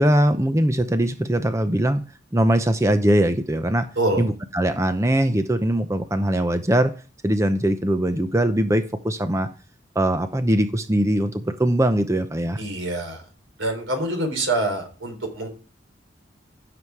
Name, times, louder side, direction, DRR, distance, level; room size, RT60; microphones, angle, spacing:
voice 1, 0.0-2.0 2.3-3.9 4.2-6.9 7.2-9.5 9.9-12.6, right 1 dB, 15° right, 9 dB, 0.7 m, -21 dB
voice 2, 4.0-4.3 12.6-13.2 13.6-15.5, right 1 dB, 85° right, 4 dB, 4.2 m, -25 dB
15.5 x 7.0 x 4.7 m, 0.36 s
head